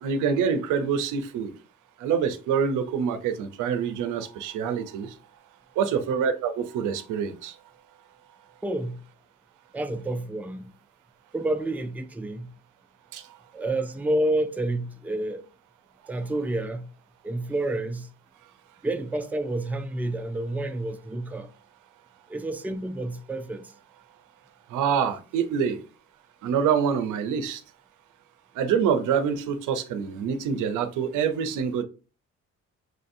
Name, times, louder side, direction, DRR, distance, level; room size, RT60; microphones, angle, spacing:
voice 1, 0.0-1.5 2.0-5.1 5.8-7.5 13.1-13.2 24.7-25.8 26.4-27.6 28.6-31.8, right 7 dB, 85° right, 0.6 m, -26 dB
voice 2, 8.6-9.0 9.7-10.7 11.3-12.5 13.5-15.4 16.1-16.9 17.2-18.1 18.8-21.5 22.3-23.7, right 1 dB, 5° right, 0.4 m, -29 dB
6.2 x 2.6 x 2.5 m
cardioid pair, 90°, 30 cm